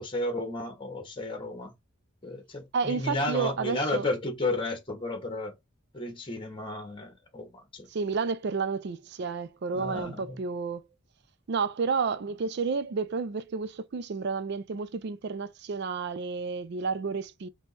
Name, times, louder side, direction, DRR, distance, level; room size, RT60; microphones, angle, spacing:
voice 1, 0.0-1.7 2.2-5.5 5.9-7.9 9.7-10.4, left 2 dB, 25° left, 1.3 m, -33 dB
voice 2, 2.7-4.1 7.9-10.9 11.5-17.5, right 5 dB, 55° right, 0.4 m, -31 dB
3.6 x 2.9 x 4.0 m
head